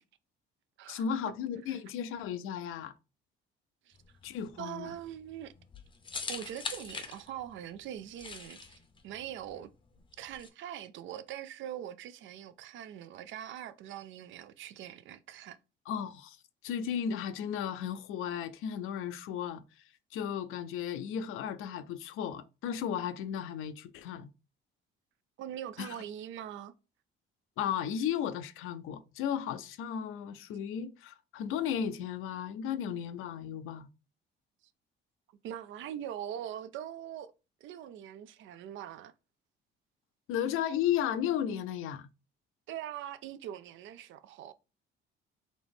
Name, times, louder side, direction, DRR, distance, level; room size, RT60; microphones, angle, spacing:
voice 1, 0.9-2.9 4.2-5.0 15.9-16.4 16.6-19.6 20.1-24.3 25.8-26.0 27.6-33.9 40.3-42.1, left 9 dB, 80° left, 0.5 m, -34 dB
sound 1, 3.9-10.5, left 4 dB, 25° left, 0.6 m, -43 dB
voice 2, 4.6-5.5 6.3-9.7 10.2-15.6 25.4-26.7 35.4-37.3 37.6-39.1 42.7-44.5, right 10 dB, 65° right, 0.5 m, -42 dB
4.1 x 3.0 x 3.4 m
cardioid pair, 130°, 21 cm